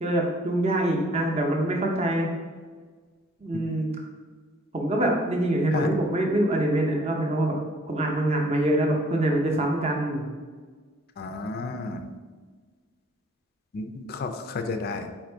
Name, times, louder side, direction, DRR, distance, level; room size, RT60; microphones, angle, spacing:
voice 1, 0.0-2.3 3.4-3.9 4.7-7.5 7.9-10.2, right 1 dB, 30° right, 0 dB, 0.6 m, -24 dB
voice 2, 11.2-12.0 13.7-15.1, left 3 dB, 45° left, 6 dB, 0.3 m, -32 dB
4.3 x 2.5 x 4.3 m, 1.4 s
head